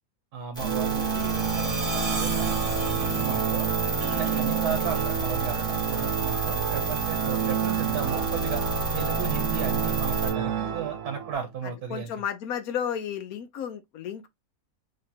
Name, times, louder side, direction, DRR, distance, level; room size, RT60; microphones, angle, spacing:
voice 1, 0.3-3.8 4.1-8.6 8.9-12.1, right 7 dB, 85° right, 1.4 m, -34 dB
sound 1, 0.6-10.3, right 1 dB, 5° left, 1.7 m, -31 dB
Organ, 0.6-11.4, right 8 dB, 65° right, 0.9 m, -29 dB
sound 2, 0.8-11.3, right 5 dB, 45° right, 0.5 m, -39 dB
voice 2, 11.9-14.3, left 8 dB, 70° left, 1.1 m, -32 dB
3.8 x 3.2 x 2.7 m
omnidirectional pair, 1.6 m